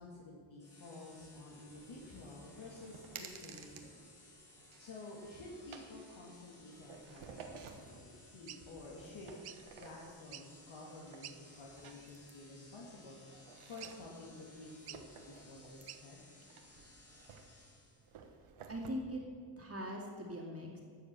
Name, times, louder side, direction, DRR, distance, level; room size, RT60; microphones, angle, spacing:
voice 1, 0.0-4.3 4.8-9.3 9.8-15.2 15.5-16.3, left 2 dB, 65° left, -3 dB, 2.2 m, -51 dB
sound 1, 0.6-18.2, left 2 dB, 30° left, 3.6 m, -61 dB
sound 2, 1.7-18.9, right 6 dB, 80° right, 1.4 m, -56 dB
sound 3, 8.5-8.6 9.4-9.6 10.2-10.6 11.2-11.4 11.9-12.2 13.8-14.2 14.9-15.1 15.9-16.0, right 11 dB, 55° right, 0.6 m, -50 dB
voice 2, 18.7-19.2 19.6-20.8, equal, 30° right, -2 dB, 2.3 m, -41 dB
12.5 x 7.4 x 6.8 m, 2.2 s
cardioid pair, 95°, 49 cm